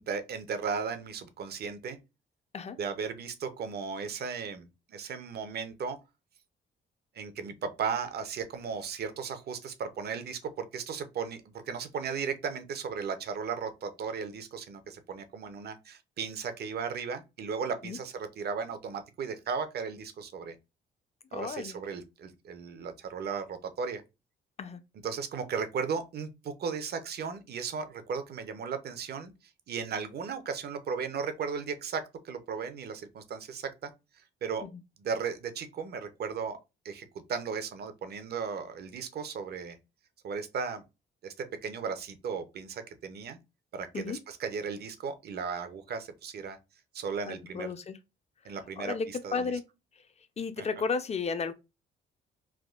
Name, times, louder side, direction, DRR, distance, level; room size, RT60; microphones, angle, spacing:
voice 1, 0.0-2.0 2.8-6.0 7.1-11.4 11.7-20.5 21.3-24.0 25.0-29.3 29.7-33.9 34.4-34.6 35.0-36.6 36.8-39.8 40.2-40.8 41.2-43.4 43.7-46.6 46.9-47.7 48.4-49.5 50.4-50.7, right 6 dB, 55° right, 0.6 m, -36 dB
voice 2, 21.3-21.8 24.6-24.8 34.7-34.8 43.9-44.2 47.3-48.0 48.8-49.6 50.4-51.5, left 5 dB, 35° left, 0.5 m, -33 dB
3.4 x 2.2 x 2.3 m
cardioid pair, 90°, 20 cm